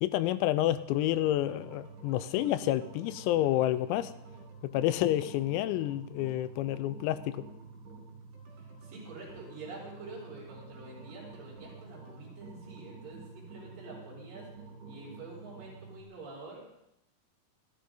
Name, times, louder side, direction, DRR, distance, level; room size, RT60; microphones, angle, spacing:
voice 1, 0.0-4.1 4.6-7.5, left 13 dB, 90° left, 14 dB, 3.5 m, -29 dB
sound 1, 0.7-16.0, right 3 dB, 65° right, 6.8 m, -49 dB
voice 2, 8.5-14.5 14.9-16.7, right 3 dB, 40° right, -6 dB, 7.4 m, -47 dB
26.5 x 13.0 x 3.9 m, 0.79 s
omnidirectional pair, 6.0 m